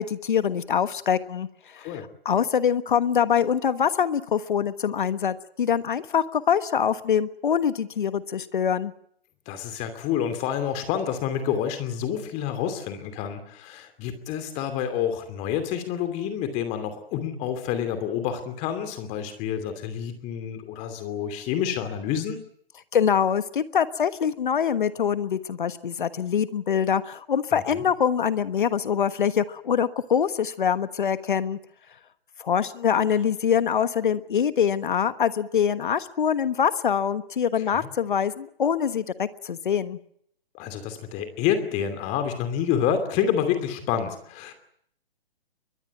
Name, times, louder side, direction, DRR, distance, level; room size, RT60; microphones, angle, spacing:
voice 1, 0.0-1.5 1.8-1.9 2.2-8.9 22.9-31.6 32.4-40.0, left 8 dB, 55° left, 14 dB, 1.3 m, -24 dB
voice 2, 1.8-2.1 9.5-22.4 27.7-27.8 37.6-37.9 40.5-44.5, left 9 dB, 25° left, 8 dB, 2.7 m, -28 dB
22.5 x 21.5 x 9.2 m, 0.68 s
figure-of-eight pair, 130°, 30 cm